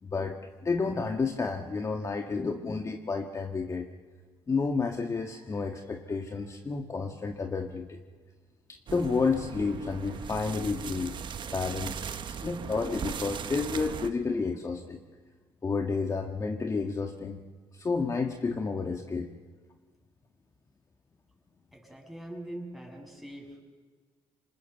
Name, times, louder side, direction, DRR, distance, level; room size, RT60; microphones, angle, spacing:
voice 1, 0.0-3.9 4.5-8.0 8.7-11.2 11.5-15.0 15.6-17.4 17.7-19.3, left 4 dB, 35° left, 3 dB, 1.7 m, -31 dB
sound 1, 8.9-14.1, right 7 dB, 55° right, 1.3 m, -38 dB
voice 2, 21.7-23.6, right 1 dB, ahead, 1 dB, 6.9 m, -42 dB
26.0 x 20.0 x 7.0 m, 1.4 s
supercardioid pair, 75°, 10 cm